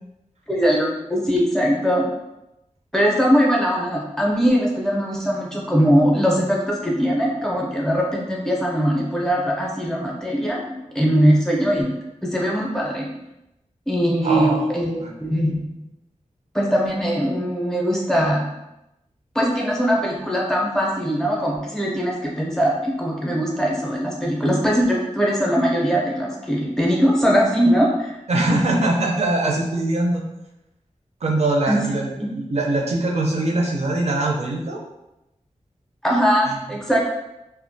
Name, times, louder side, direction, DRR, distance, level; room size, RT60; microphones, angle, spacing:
voice 1, 0.5-2.1 2.9-11.9 12.2-13.1 13.9-14.9 15.2-15.6 16.5-18.4 19.3-28.1 31.7-32.3 36.0-37.0, equal, 5° left, -2 dB, 0.6 m, -21 dB
voice 2, 14.2-14.7 15.0-15.1 28.3-30.2 31.2-34.8 36.4-36.5, right 2 dB, 55° right, -1 dB, 0.5 m, -22 dB
2.3 x 2.1 x 2.6 m, 0.91 s
wide cardioid pair, 95°, 13 cm